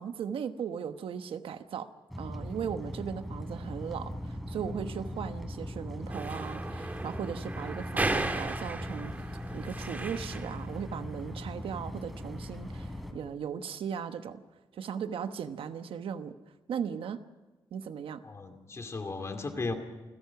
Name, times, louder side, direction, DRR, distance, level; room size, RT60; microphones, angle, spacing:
voice 1, 0.0-1.9 2.2-9.1 9.5-14.4 14.7-16.4 16.7-17.2 17.7-18.2, right 7 dB, 90° right, 9 dB, 1.2 m, -37 dB
sound 1, 2.1-13.1, equal, ahead, 3.2 m, -39 dB
sound 2, 6.1-10.6, right 2 dB, 20° right, 1.5 m, -35 dB
voice 2, 18.2-19.7, left 3 dB, 30° left, 5 dB, 2.4 m, -36 dB
29.0 x 16.5 x 5.9 m, 1.2 s
wide cardioid pair, 155°, 9 cm